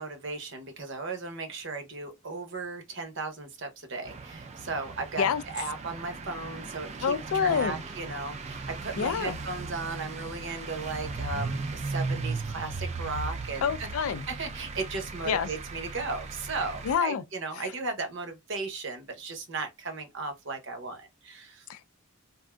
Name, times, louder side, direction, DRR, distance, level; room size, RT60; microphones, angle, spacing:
voice 1, 0.0-5.3 5.5-7.1 7.4-13.9 14.3-21.6, right 3 dB, 60° right, 0.7 m, -36 dB
sound 1, 4.0-16.9, right 3 dB, 30° right, 0.3 m, -37 dB
voice 2, 7.0-7.7 9.0-9.4 13.6-14.3 15.3-15.5 16.8-17.2 17.6-17.7 21.7-21.9, left 7 dB, 75° left, 0.3 m, -27 dB
3.5 x 2.5 x 2.2 m
head